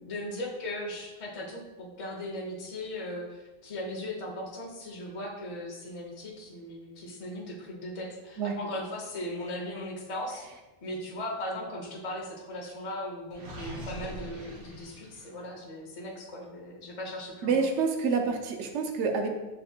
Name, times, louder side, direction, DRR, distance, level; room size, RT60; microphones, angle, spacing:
voice 1, 0.1-10.5 10.8-17.5, left 1 dB, 35° left, -2 dB, 0.6 m, -38 dB
Gurgling, 13.3-15.5, right 1 dB, 80° right, 1.5 m, -42 dB
voice 2, 17.4-19.3, right 5 dB, 65° right, 4 dB, 0.8 m, -27 dB
6.5 x 2.5 x 2.7 m, 1.1 s
omnidirectional pair, 1.4 m